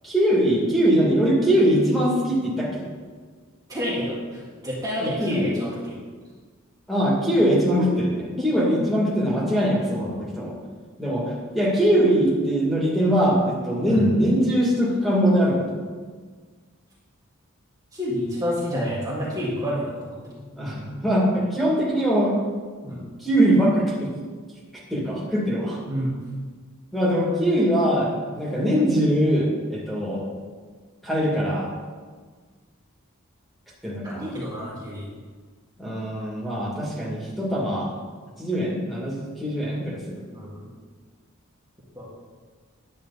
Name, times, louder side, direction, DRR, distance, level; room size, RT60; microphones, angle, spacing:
voice 1, 0.0-2.8 5.0-5.4 6.9-8.1 8.4-10.5 11.0-15.8 20.6-22.4 23.2-24.1 24.9-25.8 26.9-30.3 31.0-31.7 33.8-34.3 35.8-37.9 38.4-40.2, equal, ahead, -6 dB, 2.3 m, -22 dB
voice 2, 3.7-6.0 7.8-7.9 8.4-8.7 13.9-14.1 17.9-20.5 22.8-23.1 25.8-26.2 34.0-35.1 40.3-40.7 42.0-42.1, equal, 15° right, -8 dB, 1.9 m, -29 dB
11.0 x 8.6 x 4.2 m, 1.5 s
head